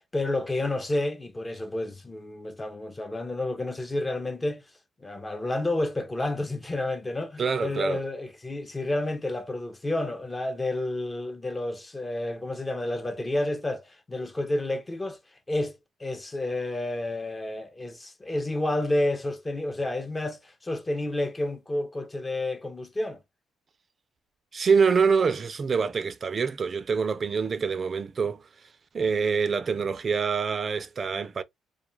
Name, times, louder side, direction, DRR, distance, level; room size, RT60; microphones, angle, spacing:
voice 1, 0.0-4.6 5.0-15.2 15.5-23.2, left 2 dB, 20° left, 0.5 m, -30 dB
voice 2, 7.4-8.0 24.5-28.4 28.9-31.4, right 5 dB, 40° right, 0.3 m, -25 dB
2.3 x 2.2 x 3.0 m
cardioid pair, 90°, 0 cm